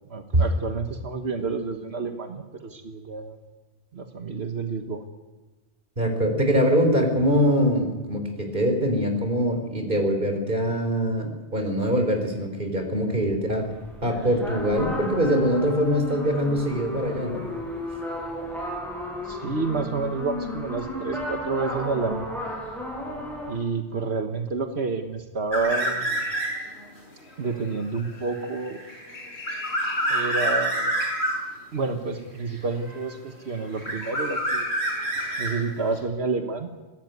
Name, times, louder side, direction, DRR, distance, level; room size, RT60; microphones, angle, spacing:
voice 1, 0.1-3.4 3.9-5.0 19.2-22.3 23.5-26.2 27.4-28.8 30.1-31.0 31.7-34.7 35.4-36.7, right 4 dB, 75° right, 6 dB, 1.7 m, -29 dB
voice 2, 6.0-13.7 14.0-17.4, equal, 50° right, 5 dB, 4.2 m, -23 dB
sound 1, 13.6-23.6, left 1 dB, ahead, 6.6 m, -34 dB
sound 2, 25.5-26.8 27.2-31.5 32.5-33.3 33.6-36.0, right 1 dB, 90° left, 5.6 m, -28 dB
22.5 x 16.5 x 9.4 m, 1.2 s
omnidirectional pair, 1.1 m